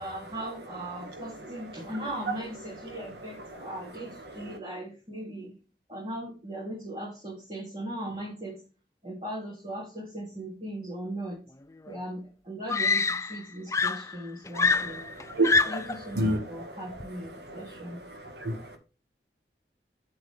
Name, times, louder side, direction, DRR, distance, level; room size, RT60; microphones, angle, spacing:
voice 1, 0.0-5.5 5.9-8.5 9.0-11.4 11.9-15.0 15.7-18.0, right 1 dB, 30° right, -6 dB, 3.0 m, -38 dB
voice 2, 3.6-4.5 14.8-14.9 15.3-15.6 16.0-16.7 17.0-17.8 18.1-18.8, right 1 dB, 70° right, 5 dB, 1.9 m, -32 dB
Screaming, 11.9-12.0 12.7-13.5 13.7-16.0 17.0-17.3, left 4 dB, 15° left, 0.4 m, -26 dB
7.6 x 7.6 x 3.5 m, 0.35 s
head